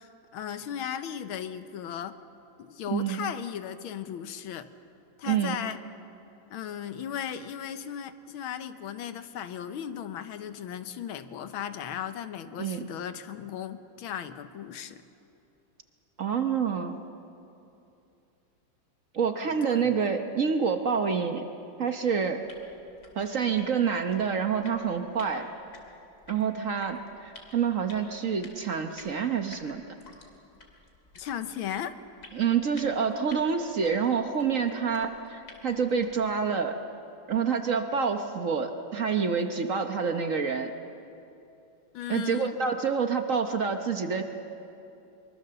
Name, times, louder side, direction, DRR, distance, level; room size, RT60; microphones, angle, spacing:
voice 1, 0.0-2.2 2.6-4.7 5.2-5.8 6.5-15.0 19.4-19.9 31.2-32.0 41.9-42.6, left 9 dB, 90° left, 10 dB, 1.8 m, -36 dB
voice 2, 2.9-3.2 5.3-5.6 12.6-12.8 16.2-17.0 19.1-21.4 21.8-22.4 23.2-25.5 26.3-29.8 32.3-36.8 37.3-40.7 42.1-44.2, right 6 dB, 50° right, 6 dB, 1.1 m, -27 dB
sound 1, 22.4-36.3, left 3 dB, 50° left, 3.1 m, -53 dB
23.5 x 23.5 x 6.9 m, 2.8 s
omnidirectional pair, 2.2 m